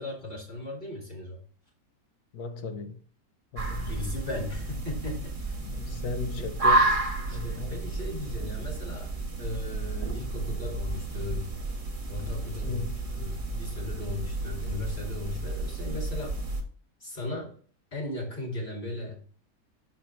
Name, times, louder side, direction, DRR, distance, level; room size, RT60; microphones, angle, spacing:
voice 1, 0.0-1.4 3.8-5.5 6.4-6.5 7.3-9.1 9.4-11.6 12.1-12.8 13.1-16.4 17.0-17.5 17.9-19.2, left 2 dB, 30° left, 2.1 m, -37 dB
voice 2, 2.3-3.0 3.5-4.0 5.6-7.0 7.3-7.8 12.6-13.0, left 4 dB, 70° left, 1.2 m, -36 dB
sound 1, 3.6-16.6, right 2 dB, 25° right, 0.9 m, -31 dB
6.1 x 5.8 x 3.1 m
omnidirectional pair, 1.8 m